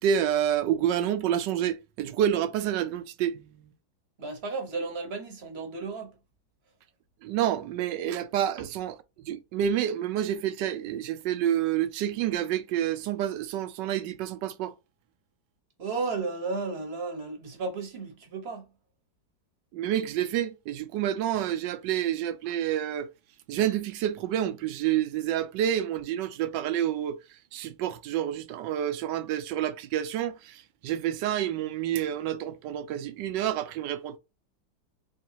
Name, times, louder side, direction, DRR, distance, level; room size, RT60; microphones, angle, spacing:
voice 1, 0.0-3.7 7.2-14.7 19.7-23.1 23.5-27.2 27.5-34.2, right 10 dB, 75° right, 1.2 m, -28 dB
voice 2, 4.2-6.1 15.8-18.7, right 4 dB, 45° right, 1.0 m, -33 dB
3.8 x 3.2 x 2.8 m
omnidirectional pair, 2.0 m